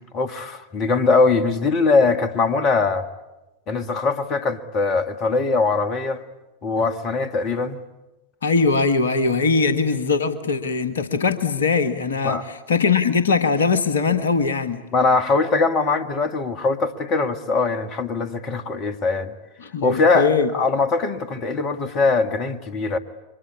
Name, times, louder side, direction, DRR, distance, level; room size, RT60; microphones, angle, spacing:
voice 1, 0.1-3.1 3.7-6.2 6.6-7.8 12.2-12.4 14.9-19.3 19.8-23.0, left 4 dB, 35° left, 1.7 m, -21 dB
voice 2, 8.4-14.8 19.6-20.5, left 4 dB, 65° left, 1.5 m, -21 dB
29.5 x 24.0 x 8.4 m
figure-of-eight pair, 90°, 0 cm